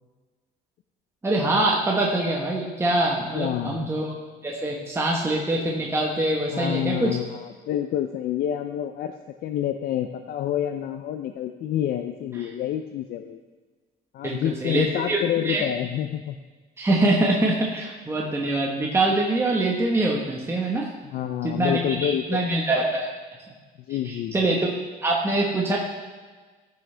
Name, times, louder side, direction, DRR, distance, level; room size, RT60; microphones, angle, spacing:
voice 1, 1.2-4.1 4.4-7.2 14.2-15.7 16.8-20.9 21.4-23.1 24.0-24.7 25.0-25.8, right 2 dB, 15° right, -2 dB, 1.3 m, -24 dB
voice 2, 3.3-3.9 6.5-9.1 9.4-13.4 14.1-16.4 21.1-22.5 23.9-24.5, left 10 dB, 65° left, 7 dB, 0.5 m, -28 dB
14.0 x 6.2 x 3.4 m, 1.4 s
cardioid pair, 110°, 17 cm